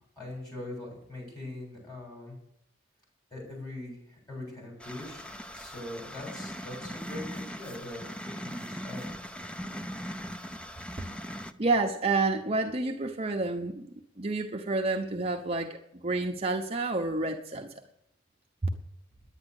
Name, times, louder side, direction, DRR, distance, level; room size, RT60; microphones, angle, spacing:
voice 1, 0.2-2.4 3.3-5.2 5.5-9.3, left 1 dB, 20° left, 7.4 m, -42 dB
sound 1, 4.8-11.5, equal, 5° left, 0.6 m, -40 dB
voice 2, 11.6-13.9 14.2-17.7, right 3 dB, 30° right, 0.9 m, -29 dB
11.0 x 9.6 x 8.1 m
head